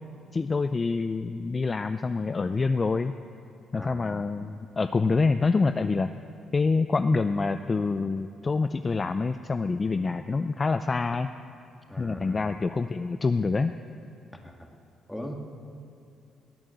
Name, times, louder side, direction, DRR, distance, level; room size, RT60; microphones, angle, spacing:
voice 1, 0.3-3.1 3.7-6.1 6.5-11.3 12.0-13.7, left 4 dB, 30° left, 9 dB, 0.5 m, -26 dB
voice 2, 3.7-4.2 11.9-12.4 14.4-14.7 15.1-15.3, left 1 dB, 5° left, 2 dB, 2.1 m, -39 dB
18.0 x 8.9 x 8.0 m, 2.9 s
cardioid pair, 90°, 0 cm